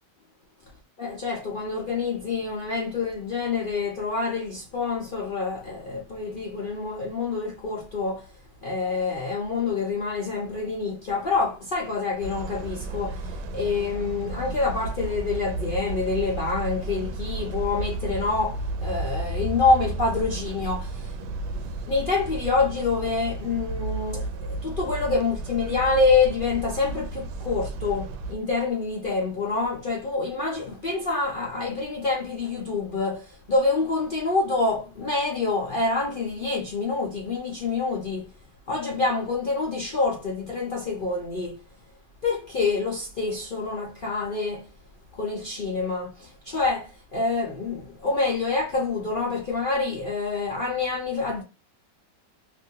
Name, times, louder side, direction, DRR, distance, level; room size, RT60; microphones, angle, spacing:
voice 1, 1.0-8.3 8.6-38.3 38.7-41.6 42.2-44.7 45.1-51.4, left 4 dB, 80° left, 0.4 m, -27 dB
sound 1, 12.2-28.4, right 2 dB, 75° right, 1.1 m, -33 dB
3.0 x 2.7 x 2.7 m
omnidirectional pair, 2.0 m